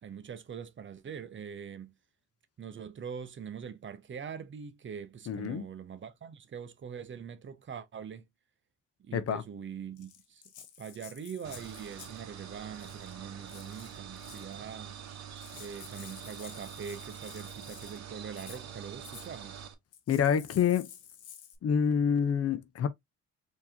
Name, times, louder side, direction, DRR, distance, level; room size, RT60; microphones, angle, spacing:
voice 1, 0.0-1.9 2.6-8.2 9.0-10.4 10.8-15.0 15.5-19.6, right 7 dB, 40° right, 0.7 m, -43 dB
voice 2, 5.3-5.6 9.1-9.4 20.1-20.9 21.6-22.9, left 7 dB, 50° left, 0.7 m, -27 dB
Rattle (instrument), 10.0-12.2 12.7-13.1 13.5-14.5 15.1-15.2 15.4-18.0 18.3-18.6 19.0-19.3 19.9-21.6, left 9 dB, 80° left, 0.9 m, -51 dB
sound 1, 11.4-19.7, right 8 dB, 60° right, 1.0 m, -45 dB
4.5 x 2.9 x 2.7 m
cardioid pair, 90°, 30 cm